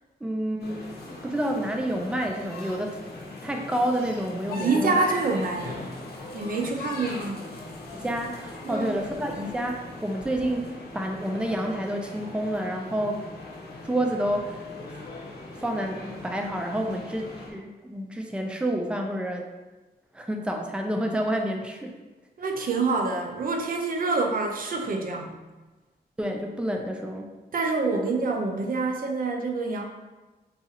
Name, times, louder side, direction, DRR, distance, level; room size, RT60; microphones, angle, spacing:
voice 1, 0.2-0.9 1.2-3.0 3.4-5.0 7.9-13.3 13.8-14.6 15.5-19.5 20.1-22.0 26.2-27.3, right 1 dB, 5° right, 3 dB, 0.4 m, -29 dB
sound 1, 0.6-17.5, left 2 dB, 80° left, 0.7 m, -40 dB
voice 2, 4.6-5.8 6.3-7.5 8.6-8.9 22.4-25.4 27.5-29.8, right 3 dB, 60° right, 2 dB, 0.5 m, -26 dB
4.0 x 2.4 x 2.8 m, 1.2 s
wide cardioid pair, 90°, 17 cm